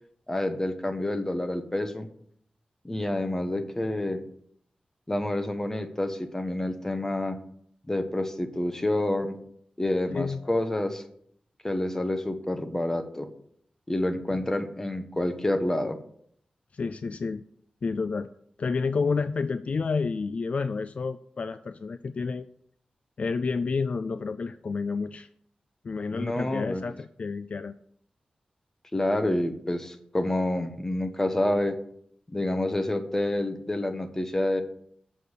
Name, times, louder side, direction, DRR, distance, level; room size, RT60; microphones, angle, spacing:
voice 1, 0.3-2.1 2.8-4.2 5.1-7.4 7.9-9.4 9.8-11.0 11.6-13.3 13.9-16.0 26.1-26.8 28.9-31.8 32.3-34.6, left 1 dB, 15° left, 7 dB, 1.1 m, -28 dB
voice 2, 16.7-17.4 17.8-18.3 18.6-22.5 23.2-25.3 25.8-27.7, left 4 dB, 55° left, 12 dB, 0.4 m, -30 dB
7.7 x 6.8 x 6.5 m, 0.66 s
wide cardioid pair, 110°, 3 cm